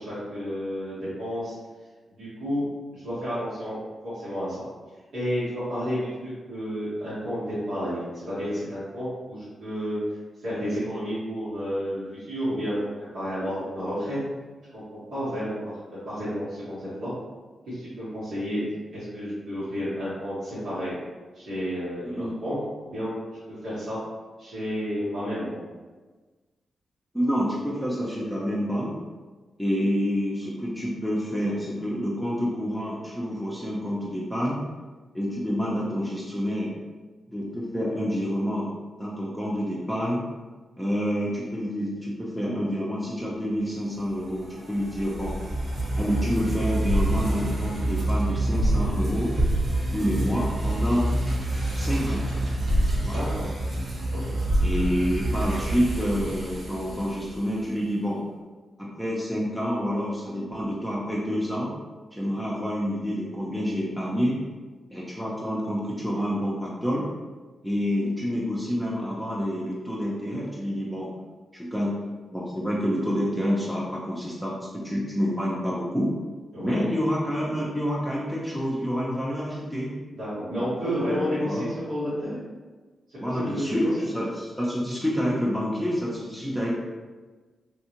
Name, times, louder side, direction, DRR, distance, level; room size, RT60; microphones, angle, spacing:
voice 1, 0.0-1.6 2.1-2.6 3.0-3.7 4.0-4.5 5.1-10.0 10.4-14.2 14.7-14.8 15.1-15.6 16.1-17.1 17.7-18.6 18.9-20.9 21.3-22.6 22.9-23.1 23.6-24.0 24.4-25.6 53.1-53.5 54.3-54.4 76.5-76.9 80.1-82.4 83.1-84.1, equal, 80° right, -14 dB, 1.5 m, -31 dB
voice 2, 27.1-28.9 29.6-34.6 35.1-36.7 37.3-38.7 39.0-40.2 40.8-45.3 46.0-49.3 49.9-51.0 51.7-52.2 53.0-53.3 54.6-58.2 58.8-61.7 62.1-64.4 64.9-67.1 67.6-71.1 71.5-71.9 72.3-76.1 76.6-79.9 80.6-81.7 83.2-86.7, equal, ahead, -6 dB, 0.7 m, -28 dB
sound 1, 44.1-57.5, right 1 dB, 45° right, 1.1 m, -27 dB
3.5 x 2.3 x 3.0 m, 1.3 s
supercardioid pair, 50°, 0 cm